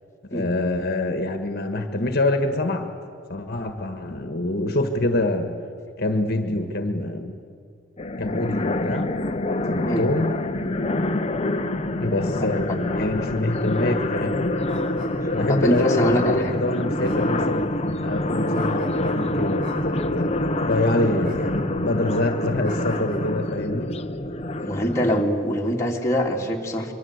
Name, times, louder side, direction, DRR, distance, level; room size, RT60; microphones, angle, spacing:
voice 1, 0.3-2.9 3.3-5.5 6.0-7.4 8.2-9.1 9.7-10.4 12.0-14.6 15.3-17.7 18.0-24.0, left 2 dB, 55° left, 6 dB, 1.6 m, -25 dB
sound 1, 8.0-25.2, left 1 dB, 30° left, 1.0 m, -26 dB
voice 2, 12.4-12.8 15.5-16.5 24.6-26.9, equal, 15° left, -1 dB, 2.7 m, -24 dB
sound 2, 14.7-15.1 15.7-16.4 17.0-17.4 18.5-19.2 19.6-20.0 21.2-21.4 21.7-22.0 22.6-23.2, equal, 45° right, 7.5 m, -43 dB
25.0 x 23.5 x 8.2 m, 2.4 s
head